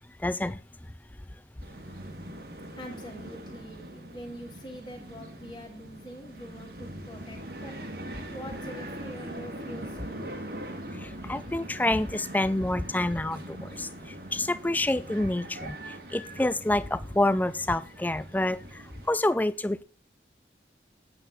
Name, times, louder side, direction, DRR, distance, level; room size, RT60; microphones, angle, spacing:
voice 1, 0.2-0.6 10.9-19.8, left 1 dB, 10° left, 15 dB, 0.3 m, -28 dB
sound 1, 1.6-19.1, right 1 dB, 55° right, 1.6 m, -42 dB
voice 2, 2.8-7.8 8.3-10.3 12.2-12.3 16.3-16.4, equal, 25° left, 1 dB, 1.9 m, -44 dB
8.8 x 8.3 x 3.8 m, 0.35 s
head